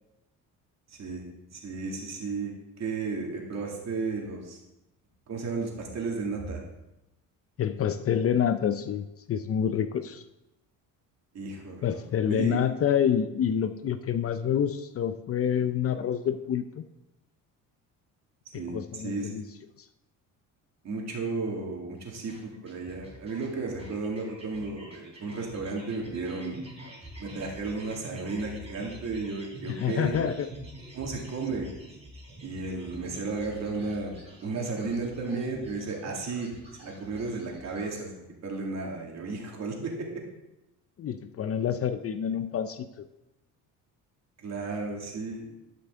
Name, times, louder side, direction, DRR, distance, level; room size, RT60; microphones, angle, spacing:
voice 1, 0.9-1.2 1.5-2.5 2.8-4.6 5.3-6.6 11.3-12.6 18.5-19.3 20.8-26.6 27.2-30.2 30.9-31.7 32.4-36.5 36.8-40.1 44.4-45.5, right 3 dB, 50° right, 0 dB, 2.3 m, -34 dB
voice 2, 7.6-10.2 11.8-16.8 18.5-19.4 29.7-30.5 41.0-43.1, left 8 dB, 40° left, 11 dB, 0.5 m, -27 dB
sound 1, 22.1-38.0, right 1 dB, 15° right, 3.5 m, -47 dB
11.5 x 5.7 x 3.7 m, 0.93 s
cardioid pair, 90°, 35 cm